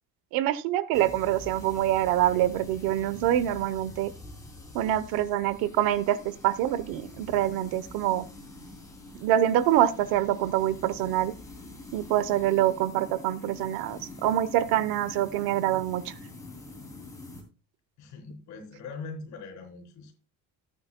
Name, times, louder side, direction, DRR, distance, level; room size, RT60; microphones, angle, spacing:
voice 1, 0.3-4.1 4.7-8.2 9.2-11.3 11.9-16.1, right 12 dB, 85° right, 15 dB, 0.9 m, -25 dB
sound 1, 0.9-17.4, left 2 dB, 10° left, 2.8 m, -45 dB
voice 2, 18.0-20.3, left 4 dB, 55° left, 4 dB, 3.7 m, -42 dB
14.5 x 9.4 x 2.2 m, 0.30 s
cardioid pair, 175°, 35 cm